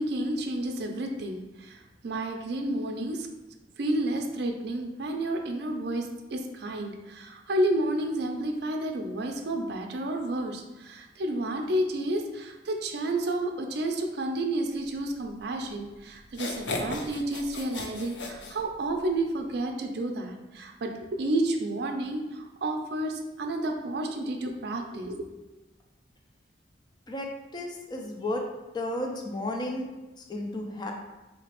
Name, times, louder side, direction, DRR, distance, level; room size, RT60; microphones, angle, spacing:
voice 1, 0.0-3.3 3.8-25.3, right 1 dB, 60° right, 4 dB, 0.4 m, -31 dB
sound 1, 15.7-15.8 16.3-19.1, left 2 dB, 80° left, 0.5 m, -36 dB
voice 2, 27.1-28.4 28.7-29.9 30.3-30.9, left 1 dB, 25° left, 2 dB, 0.4 m, -33 dB
3.7 x 2.9 x 2.9 m, 1.1 s
head